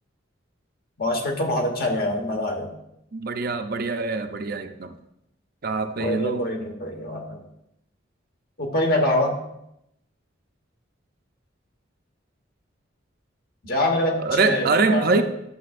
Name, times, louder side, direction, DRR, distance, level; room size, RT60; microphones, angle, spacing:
voice 1, 1.0-2.7 6.0-7.4 8.6-9.4 13.6-15.2, left 1 dB, 50° left, 3 dB, 1.3 m, -25 dB
voice 2, 3.1-5.0 5.6-6.5 14.2-15.2, right 4 dB, 50° right, 7 dB, 0.6 m, -24 dB
11.0 x 6.9 x 2.5 m, 0.80 s
head